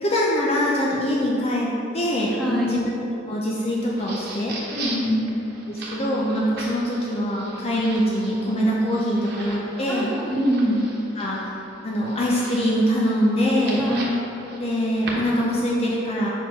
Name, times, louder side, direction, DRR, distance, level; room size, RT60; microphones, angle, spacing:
voice 1, 0.0-2.9 3.3-4.5 5.7-10.1 11.2-11.5 11.8-13.9 14.6-16.3, equal, 35° left, -4 dB, 0.6 m, -23 dB
voice 2, 2.4-2.8 4.7-5.3 9.9-10.8 13.8-14.2, equal, ahead, -6 dB, 1.2 m, -24 dB
sound 1, 3.7-15.7, right 2 dB, 60° right, 1.2 m, -39 dB
5.3 x 4.8 x 5.5 m, 3.0 s
head